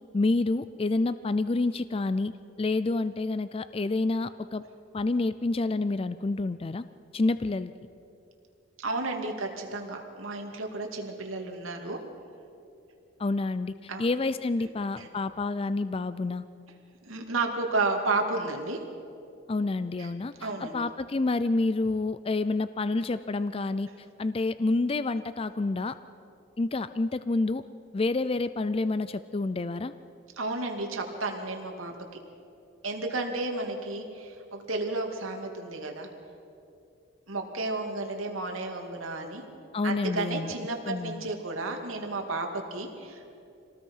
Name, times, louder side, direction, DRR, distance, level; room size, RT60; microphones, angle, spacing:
voice 1, 0.1-2.3 2.6-4.6 4.9-6.8 7.1-7.7 13.2-16.4 19.5-23.9 24.2-26.0 26.6-27.6 27.9-29.9 39.7-40.5 40.9-41.2, left 3 dB, 25° left, 13 dB, 0.4 m, -28 dB
voice 2, 8.8-12.0 13.9-14.1 15.0-15.1 17.0-18.8 20.0-20.1 20.4-20.8 30.4-31.9 32.8-36.1 37.3-39.4 39.8-43.3, right 3 dB, 80° right, 2 dB, 2.5 m, -32 dB
26.0 x 19.0 x 5.6 m, 2.6 s
head